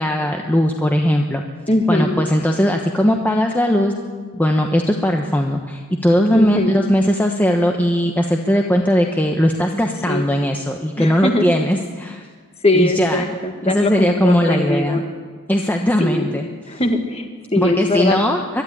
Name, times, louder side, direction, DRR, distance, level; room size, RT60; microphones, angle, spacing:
voice 1, 0.0-1.4 1.9-3.9 4.3-12.3 12.7-13.2 13.7-15.0 15.5-16.5 17.6-18.6, equal, 10° left, 2 dB, 1.0 m, -18 dB
voice 2, 1.7-2.2 6.3-6.8 10.1-10.2 11.0-11.4 12.6-15.0 16.0-16.3 16.7-18.2, left 1 dB, 25° left, 5 dB, 1.9 m, -20 dB
23.0 x 13.0 x 10.0 m, 1.5 s
head